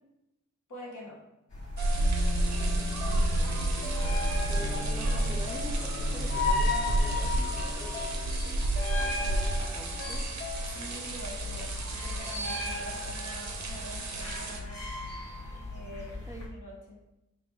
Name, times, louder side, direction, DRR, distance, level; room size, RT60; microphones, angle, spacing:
voice 1, 0.7-1.2 10.7-14.9 15.7-16.2 16.5-17.0, equal, 80° left, -4 dB, 1.2 m, -45 dB
sound 1, 1.5-16.5, left 3 dB, 55° left, 1.4 m, -37 dB
sound 2, 1.8-12.0, left 3 dB, 40° left, 0.6 m, -41 dB
sound 3, 1.8-14.6, right 1 dB, 65° right, 0.6 m, -30 dB
voice 2, 2.5-3.3 4.5-8.1 9.0-10.2 15.4-15.7 16.3-16.5, right 1 dB, 10° right, 2 dB, 0.4 m, -45 dB
3.7 x 2.2 x 4.4 m, 0.92 s
wide cardioid pair, 75°, 31 cm